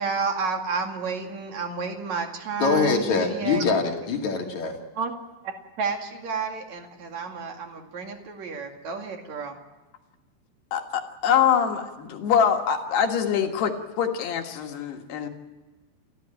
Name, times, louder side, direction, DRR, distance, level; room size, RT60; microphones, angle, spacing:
voice 1, 0.0-3.6 4.9-5.1 5.4-9.6, right 5 dB, 45° right, 4 dB, 2.8 m, -31 dB
voice 2, 2.6-4.8, left 5 dB, 45° left, 1 dB, 2.9 m, -24 dB
voice 3, 10.7-15.3, left 8 dB, 65° left, 4 dB, 3.4 m, -24 dB
29.0 x 15.0 x 8.9 m, 1.2 s
omnidirectional pair, 5.5 m